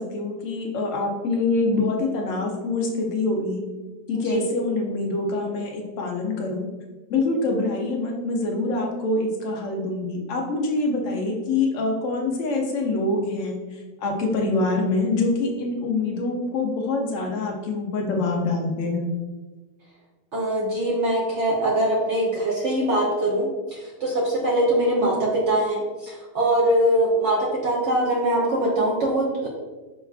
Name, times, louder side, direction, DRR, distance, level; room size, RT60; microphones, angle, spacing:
voice 1, 0.0-3.6 4.1-6.7 7.1-19.1, left 3 dB, 65° left, 1 dB, 0.8 m, -25 dB
voice 2, 20.3-27.4 27.6-29.5, right 1 dB, 70° right, -5 dB, 0.6 m, -22 dB
5.2 x 2.3 x 2.3 m, 1.2 s
omnidirectional pair, 1.9 m